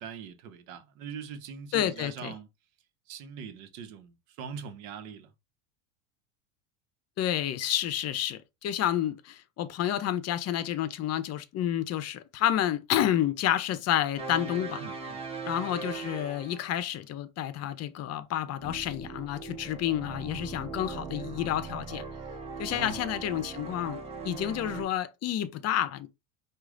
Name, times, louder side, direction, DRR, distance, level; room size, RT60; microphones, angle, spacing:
voice 1, 0.0-2.5 3.1-5.3 14.8-15.2 22.7-23.0, right 6 dB, 70° right, 1.1 m, -42 dB
voice 2, 1.7-2.3 7.2-14.8 15.5-22.0 22.6-26.1, left 11 dB, 40° left, 0.7 m, -30 dB
sound 1, 14.2-16.8 18.6-24.9, right 4 dB, 15° right, 1.9 m, -40 dB
4.7 x 2.5 x 3.8 m
supercardioid pair, 120°, 41 cm